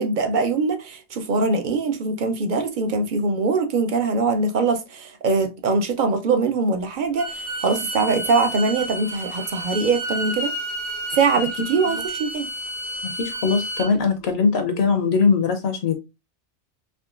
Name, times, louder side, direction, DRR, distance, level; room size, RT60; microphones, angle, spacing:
voice 1, 0.0-10.5 11.1-12.5, right 4 dB, 55° right, 0.6 m, -22 dB
Bowed string instrument, 7.2-13.9, equal, 75° right, 1.0 m, -31 dB
voice 2, 13.0-15.9, left 5 dB, 70° left, 0.8 m, -21 dB
3.6 x 2.9 x 2.4 m
omnidirectional pair, 1.2 m